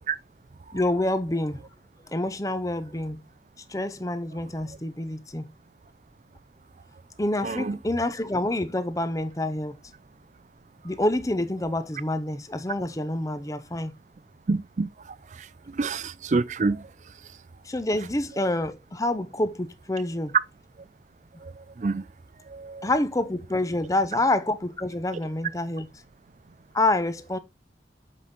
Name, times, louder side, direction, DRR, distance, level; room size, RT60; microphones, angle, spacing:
voice 1, 0.7-1.6 2.1-3.2 3.7-5.4 7.2-9.8 10.8-13.9 17.6-20.4 22.8-25.9 26.7-27.4, left 1 dB, 20° left, 0.7 m, -27 dB
voice 2, 7.4-7.8 14.5-14.9 15.8-16.8 21.8-22.0 22.5-22.9, right 3 dB, 40° right, 0.4 m, -26 dB
7.6 x 5.2 x 3.9 m
head